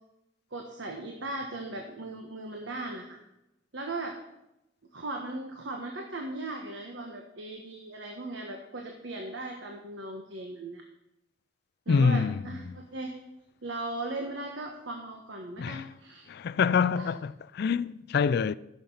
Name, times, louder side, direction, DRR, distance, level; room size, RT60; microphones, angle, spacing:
voice 1, 0.5-3.2 3.7-4.2 4.9-10.8 11.9-13.1 13.6-16.3 16.9-17.1, right 2 dB, 90° right, 1.3 m, -38 dB
voice 2, 11.9-12.4 15.6-15.9 16.3-18.5, left 5 dB, 60° left, 0.4 m, -26 dB
14.0 x 7.0 x 5.6 m
head